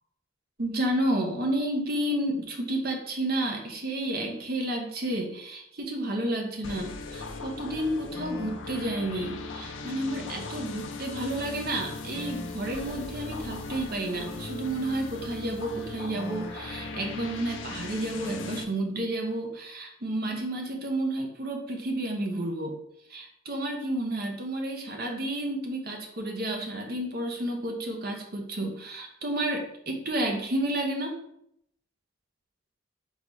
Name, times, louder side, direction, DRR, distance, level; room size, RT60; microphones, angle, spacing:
voice 1, 0.6-22.8 23.1-31.2, right 1 dB, 50° right, 2 dB, 0.8 m, -31 dB
sound 1, 6.6-18.6, left 3 dB, 70° left, 0.5 m, -38 dB
3.9 x 3.9 x 3.0 m, 0.74 s
head